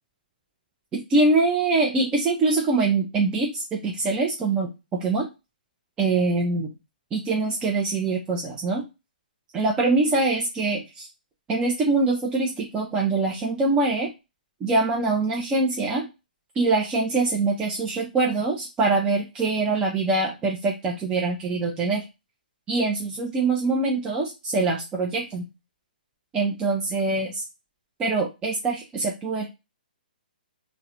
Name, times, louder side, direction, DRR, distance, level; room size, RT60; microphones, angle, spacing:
voice 1, 0.9-5.3 6.0-6.7 7.1-8.8 9.5-11.1 11.5-14.1 14.6-16.1 16.6-22.0 22.7-25.4 26.3-27.4 28.0-29.5, right 3 dB, 15° right, -1 dB, 0.4 m, -24 dB
2.3 x 2.0 x 2.8 m, 0.25 s
hypercardioid pair, 135°, 5 cm